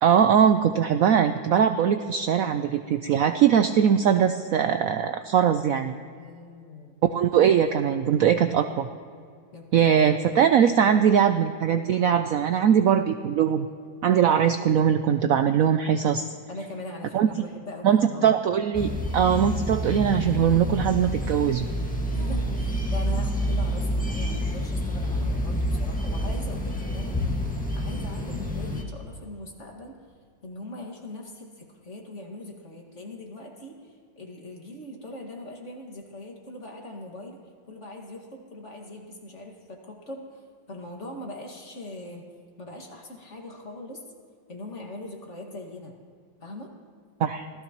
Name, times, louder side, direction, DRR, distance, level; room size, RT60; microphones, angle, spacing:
voice 1, 0.0-6.0 7.0-8.9 9.7-13.7 14.0-16.3 17.1-17.4 17.8-21.6 47.2-47.5, right 8 dB, 80° right, 9 dB, 0.7 m, -21 dB
voice 2, 6.1-6.9 9.5-10.2 16.5-18.4 22.1-27.2 27.7-30.0 30.4-37.4 37.7-42.2 42.6-44.0 44.5-45.9 46.4-46.7, left 1 dB, 40° left, 1 dB, 2.1 m, -41 dB
sound 1, 18.7-28.8, equal, 5° left, 1.4 m, -28 dB
26.0 x 16.5 x 3.0 m, 2.2 s
omnidirectional pair, 2.1 m